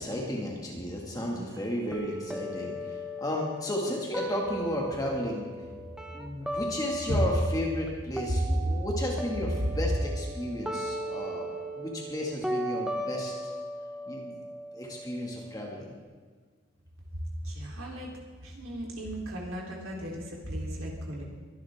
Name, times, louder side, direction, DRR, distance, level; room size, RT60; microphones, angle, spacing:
voice 1, 0.0-5.5 6.1-11.5 11.7-13.3 14.1-14.4 14.7-15.9, left 1 dB, 20° left, -2 dB, 2.0 m, -33 dB
voice 2, 1.2-1.6 17.4-18.1 18.4-21.2, equal, 90° right, -2 dB, 3.7 m, -37 dB
sound 1, 1.9-15.9, equal, 5° right, 0.9 m, -37 dB
22.0 x 12.0 x 3.6 m, 1.5 s
head